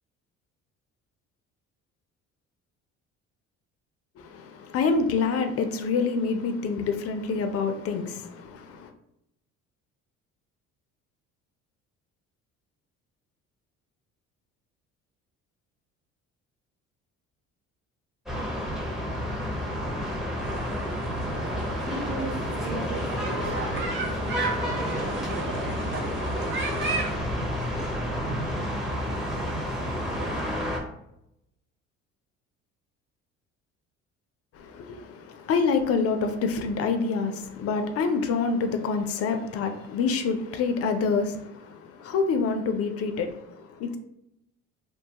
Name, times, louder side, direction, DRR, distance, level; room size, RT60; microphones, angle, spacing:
voice 1, 4.2-8.9 34.5-44.0, left 4 dB, 50° left, 0.4 m, -27 dB
sound 1, 18.3-30.8, equal, ahead, 0.6 m, -30 dB
sound 2, 20.4-27.2, right 2 dB, 40° right, 0.7 m, -34 dB
voice 2, 21.7-25.2, right 2 dB, 75° right, 1.1 m, -38 dB
2.6 x 2.2 x 2.7 m
supercardioid pair, 90°, 30 cm